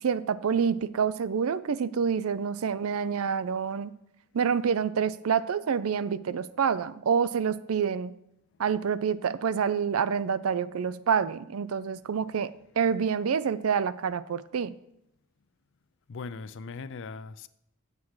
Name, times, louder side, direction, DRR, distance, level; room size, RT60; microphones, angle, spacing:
voice 1, 0.0-3.9 4.3-8.1 8.6-12.5 12.8-14.7, right 6 dB, 70° right, 16 dB, 0.4 m, -27 dB
voice 2, 16.1-17.5, left 4 dB, 60° left, 14 dB, 0.5 m, -39 dB
8.3 x 7.3 x 4.8 m, 0.81 s
head